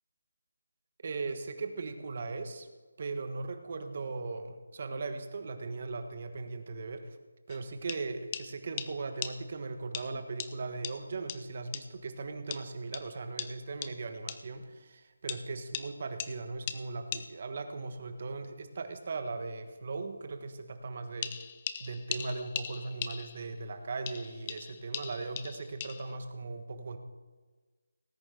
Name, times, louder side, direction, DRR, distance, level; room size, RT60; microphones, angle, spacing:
voice 1, 1.0-2.7 3.0-7.2 7.5-21.5 21.8-27.0, right 3 dB, 40° right, 7 dB, 1.3 m, -38 dB
sound 1, 7.5-7.6 7.9-8.0 8.3-8.5 8.8-8.9 9.2-9.3 9.9-10.1 10.4-10.5 10.8-11.0 11.3-11.4 11.7-11.8 12.5-12.6 12.9-13.0 13.4-13.5 13.8-13.9 14.3-14.4 15.3-15.4 15.7-15.9 16.2-16.3 16.7-16.8 17.1-17.2 21.2-23.6 24.1-26.2, left 9 dB, 20° left, 0.5 m, -39 dB
18.5 x 9.7 x 3.9 m, 1.3 s
figure-of-eight pair, 170°, 0 cm